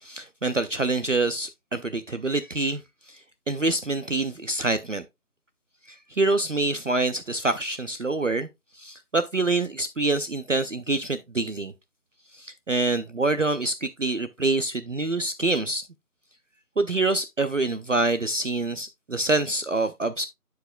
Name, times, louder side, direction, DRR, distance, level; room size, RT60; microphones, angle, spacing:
voice 1, 0.0-2.8 3.1-3.2 3.5-5.0 5.9-8.5 8.7-11.7 12.3-15.9 16.8-20.2, right 2 dB, 55° right, 0.5 m, -26 dB
11.5 x 4.7 x 2.2 m
figure-of-eight pair, 170°, 45 cm